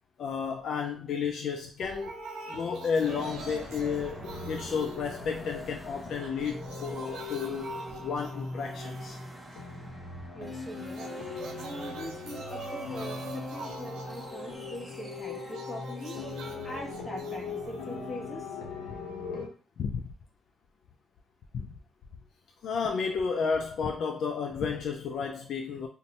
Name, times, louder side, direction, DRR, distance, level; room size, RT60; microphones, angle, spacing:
voice 1, 0.2-2.1 2.5-9.2 19.8-20.0 21.5-21.7 22.6-25.9, left 6 dB, 65° left, 3 dB, 0.3 m, -32 dB
sound 1, 1.8-5.8 6.1-9.8 10.8-18.8, right 4 dB, 75° right, 0.5 m, -45 dB
sound 2, 2.5-19.5, left 4 dB, 90° left, 0.7 m, -41 dB
sound 3, 3.0-17.7, right 1 dB, 15° right, 0.6 m, -48 dB
voice 2, 10.3-11.2 11.6-16.2 16.6-18.5, left 1 dB, 30° left, 0 dB, 1.1 m, -42 dB
2.6 x 2.2 x 4.0 m, 0.37 s
cardioid pair, 90°, 0 cm